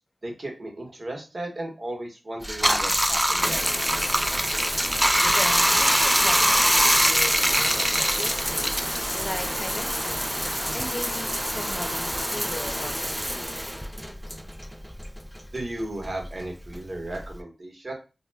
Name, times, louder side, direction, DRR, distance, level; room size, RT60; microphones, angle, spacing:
voice 1, 0.2-3.6 15.5-17.9, right 1 dB, 55° right, 1 dB, 0.9 m, -35 dB
Bathtub (filling or washing), 2.4-15.2 15.6-17.4, equal, 5° right, 0.3 m, -24 dB
voice 2, 5.2-8.7 9.1-10.3 10.7-13.6, left 1 dB, 45° left, 4 dB, 0.6 m, -37 dB
2.3 x 2.1 x 3.2 m, 0.30 s
cardioid pair, 50°, 0 cm